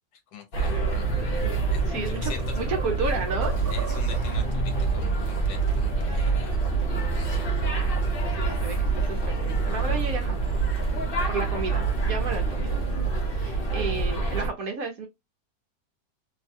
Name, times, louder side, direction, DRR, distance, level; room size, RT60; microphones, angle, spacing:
voice 1, 0.3-1.0 1.7-2.6 3.7-6.6 6.9-7.5, left 7 dB, 70° left, 1.3 m, -43 dB
sound 1, 0.5-14.5, right 4 dB, 45° left, 0.7 m, -26 dB
sound 2, 1.2-1.3 1.8-4.4, right 5 dB, 85° right, 0.5 m, -41 dB
voice 2, 1.9-3.5 8.4-10.6 11.3-12.8 13.3-15.1, right 4 dB, 65° right, 1.0 m, -32 dB
sound 3, 3.4-9.2, left 2 dB, 35° right, 1.1 m, -45 dB
3.1 x 2.2 x 2.6 m
omnidirectional pair, 1.9 m